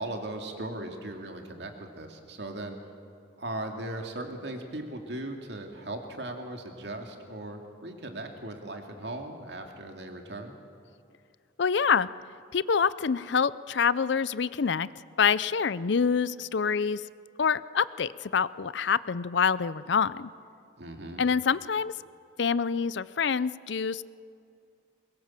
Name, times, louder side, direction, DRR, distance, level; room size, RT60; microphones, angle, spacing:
voice 1, 0.0-2.8 3.4-10.5 20.8-21.2, right 1 dB, 60° right, 3 dB, 2.6 m, -38 dB
voice 2, 11.6-12.1 12.5-14.9 15.2-17.0 17.4-20.3 21.2-21.9 22.4-24.0, left 6 dB, 65° left, 18 dB, 0.5 m, -26 dB
22.5 x 22.0 x 7.5 m, 2.4 s
head